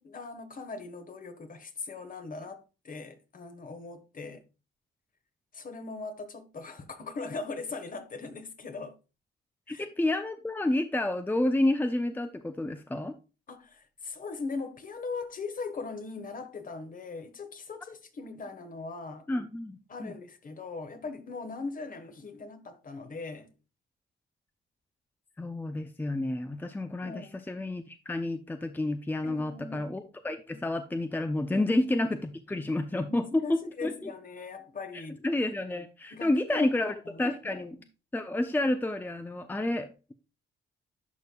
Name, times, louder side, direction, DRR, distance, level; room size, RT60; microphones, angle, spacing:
voice 1, 0.0-4.4 5.5-8.9 9.7-9.8 13.5-19.3 19.9-23.5 27.0-27.3 29.2-29.9 31.5-31.8 33.1-35.3 36.1-37.8, left 4 dB, 45° left, 1.4 m, -40 dB
voice 2, 9.7-13.1 19.3-20.1 25.4-34.1 34.9-37.8 38.1-40.1, left 1 dB, 10° left, 0.6 m, -30 dB
11.0 x 5.2 x 2.4 m
cardioid pair, 90°, 20 cm